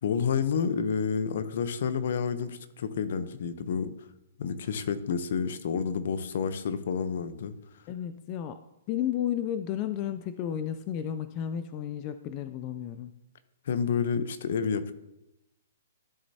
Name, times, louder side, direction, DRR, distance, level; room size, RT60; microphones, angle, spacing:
voice 1, 0.0-3.9 4.4-7.5 13.7-14.9, left 6 dB, 65° left, 12 dB, 0.8 m, -29 dB
voice 2, 7.9-8.6 8.9-13.1, left 10 dB, 35° left, 10 dB, 0.4 m, -32 dB
12.5 x 6.6 x 2.8 m, 0.91 s
hypercardioid pair, 140°, 0 cm